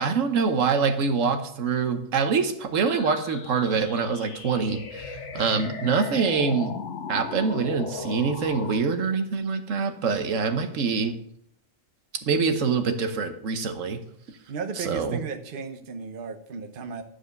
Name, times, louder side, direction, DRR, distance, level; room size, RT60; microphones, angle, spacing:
voice 1, 0.0-6.7 7.1-11.1 12.3-14.0 14.8-15.2, right 5 dB, 85° right, 8 dB, 1.3 m, -25 dB
sound 1, 2.8-8.8, left 5 dB, 70° left, 1.3 m, -37 dB
voice 2, 14.5-17.0, right 5 dB, 50° right, 6 dB, 1.0 m, -35 dB
11.5 x 4.9 x 6.6 m, 0.70 s
omnidirectional pair, 1.3 m